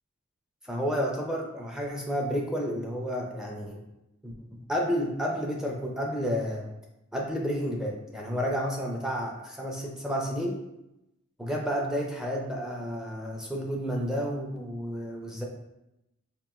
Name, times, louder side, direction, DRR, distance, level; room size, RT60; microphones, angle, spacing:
voice 1, 0.6-3.8 4.2-4.3 4.7-6.7 7.1-10.6 11.4-15.4, equal, 5° right, -1 dB, 0.4 m, -31 dB
4.7 x 2.9 x 2.3 m, 0.91 s
head